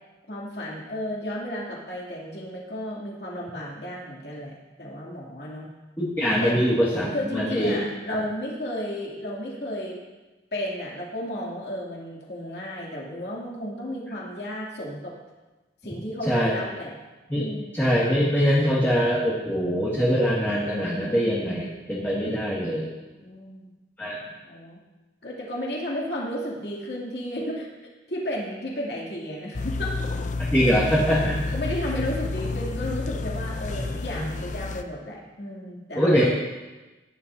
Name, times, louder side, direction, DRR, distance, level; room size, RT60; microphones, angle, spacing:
voice 1, 0.3-5.7 6.4-6.6 7.1-10.0 10.5-15.2 15.8-16.9 17.3-17.8 23.2-23.7 24.4-24.8 25.2-27.7 28.1-29.9 30.6-31.0 31.5-36.3, equal, 60° left, -4 dB, 2.8 m, -33 dB
voice 2, 6.0-7.8 8.1-8.3 16.3-16.6 17.3-22.9 24.0-24.2 30.5-31.4 33.7-33.9 34.2-34.3 36.0-36.3, equal, 10° left, -8 dB, 2.0 m, -23 dB
sound 1, 29.5-34.8, left 3 dB, 45° left, 0.5 m, -30 dB
17.0 x 11.0 x 2.8 m, 1.2 s
head